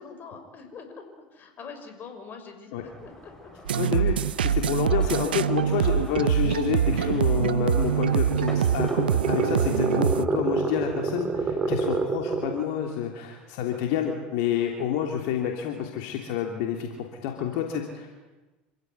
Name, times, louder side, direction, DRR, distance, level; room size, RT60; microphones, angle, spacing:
voice 1, 0.0-3.5 4.6-4.8 5.5-5.7 11.5-11.7, left 5 dB, 40° left, 6 dB, 5.9 m, -44 dB
sound 1, 2.8-9.7, left 1 dB, 10° left, 7.2 m, -46 dB
sound 2, 3.7-10.3, right 9 dB, 90° right, 0.7 m, -24 dB
voice 2, 3.8-18.1, left 9 dB, 65° left, 2 dB, 3.1 m, -29 dB
sound 3, 7.8-12.7, right 4 dB, 30° right, 2.9 m, -28 dB
27.0 x 16.0 x 9.7 m, 1.2 s
hypercardioid pair, 85°, 5 cm